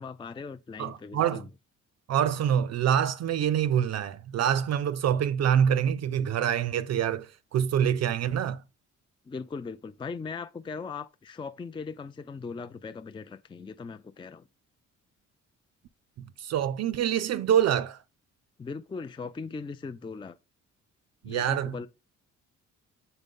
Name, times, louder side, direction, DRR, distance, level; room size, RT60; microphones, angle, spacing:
voice 1, 0.0-1.5 9.3-14.5 18.6-20.4 21.2-21.9, left 4 dB, 15° left, 0.4 m, -39 dB
voice 2, 0.8-1.4 2.1-8.6 16.4-18.0 21.2-21.7, right 9 dB, 60° right, 0.5 m, -26 dB
8.1 x 3.9 x 3.6 m
cardioid pair, 90°, 30 cm